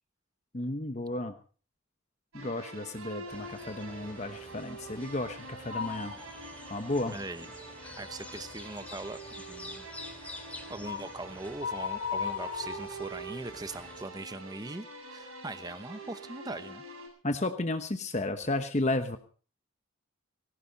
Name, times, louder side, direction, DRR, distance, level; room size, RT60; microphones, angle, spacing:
voice 1, 0.5-1.3 2.3-6.1 6.7-7.2 17.2-19.2, left 2 dB, 35° left, 8 dB, 1.0 m, -33 dB
sound 1, 2.3-17.1, right 2 dB, 80° right, 7.5 m, -46 dB
sound 2, 3.3-14.0, left 1 dB, 5° left, 2.4 m, -49 dB
sound 3, 5.7-6.3 6.8-6.9 10.8-11.1 11.6-13.5, left 6 dB, 65° left, 3.3 m, -36 dB
voice 2, 7.1-7.5 8.0-9.2 9.5-9.9 10.7-16.8, right 2 dB, 20° right, 11 dB, 0.9 m, -41 dB
19.0 x 17.0 x 4.0 m, 0.41 s
head